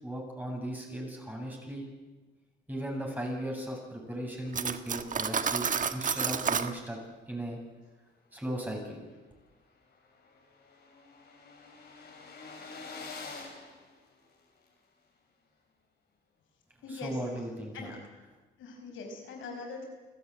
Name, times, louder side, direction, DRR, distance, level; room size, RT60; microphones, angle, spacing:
voice 1, 0.0-1.9 2.7-7.0 7.3-7.6 8.3-9.0 16.9-17.9, right 1 dB, 10° right, 0 dB, 8.0 m, -37 dB
Cutlery silverware, 4.5-6.7, right 6 dB, 40° right, 1.4 m, -30 dB
sound 1, 9.1-9.2 9.5-9.6 9.8-14.7, left 4 dB, 55° left, 6.5 m, -47 dB
voice 2, 16.8-17.2 17.7-18.0 18.6-19.9, left 4 dB, 80° left, 3 dB, 5.5 m, -42 dB
29.5 x 13.0 x 9.1 m, 1.2 s
cardioid pair, 90°, 20 cm